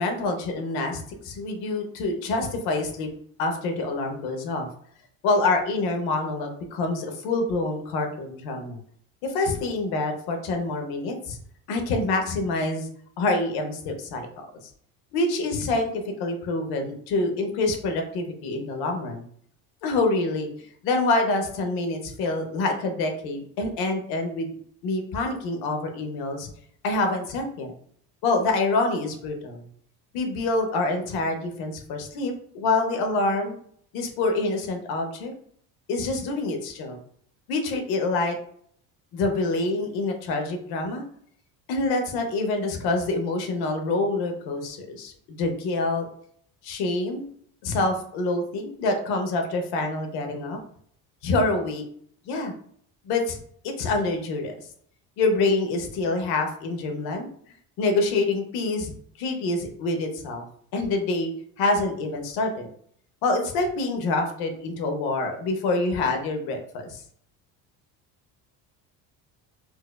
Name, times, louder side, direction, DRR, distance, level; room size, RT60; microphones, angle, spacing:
voice 1, 0.0-3.1 3.4-4.7 5.2-8.8 9.2-11.4 11.7-12.9 13.2-14.5 15.1-19.2 19.8-20.5 20.8-24.5 24.8-26.5 26.8-27.7 28.2-29.6 30.1-33.6 33.9-35.3 35.9-37.0 37.5-38.4 39.1-41.0 41.7-46.1 46.6-47.3 47.6-50.6 51.2-51.8 52.3-52.5 53.0-53.4 53.6-54.5 55.2-57.3 57.8-58.9 59.2-60.4 60.7-61.3 61.6-62.7 63.2-67.0, left 2 dB, 75° left, 4 dB, 0.8 m, -26 dB
4.4 x 2.4 x 2.2 m, 0.62 s
cardioid pair, 160°, 38 cm